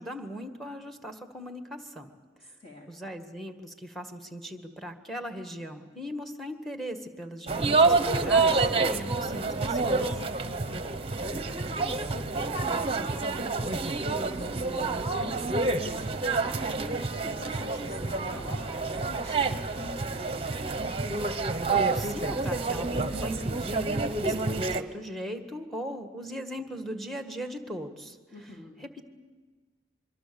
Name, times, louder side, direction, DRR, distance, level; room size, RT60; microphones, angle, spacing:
voice 1, 0.0-2.1 2.9-10.1 21.6-28.2 28.8-29.0, equal, ahead, 6 dB, 1.7 m, -38 dB
voice 2, 2.4-2.9 10.4-20.5 28.3-28.8, left 2 dB, 30° left, -1 dB, 2.8 m, -45 dB
sound 1, 7.5-24.8, right 3 dB, 30° right, 1.0 m, -28 dB
24.5 x 23.5 x 7.0 m, 1.4 s
head